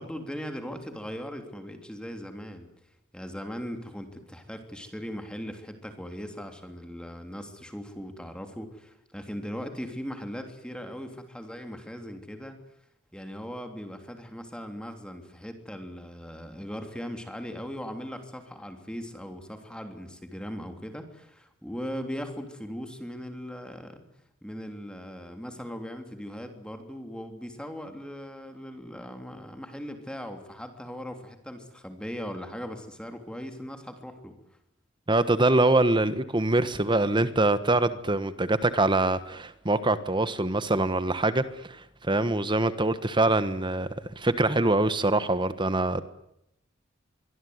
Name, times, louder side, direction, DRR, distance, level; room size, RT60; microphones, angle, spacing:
voice 1, 0.0-2.7 3.1-12.6 13.1-24.0 24.4-34.3, equal, 5° left, 6 dB, 3.3 m, -39 dB
voice 2, 35.1-43.9 44.2-46.0, right 2 dB, 25° right, 13 dB, 1.3 m, -24 dB
24.5 x 24.0 x 9.6 m, 0.81 s
head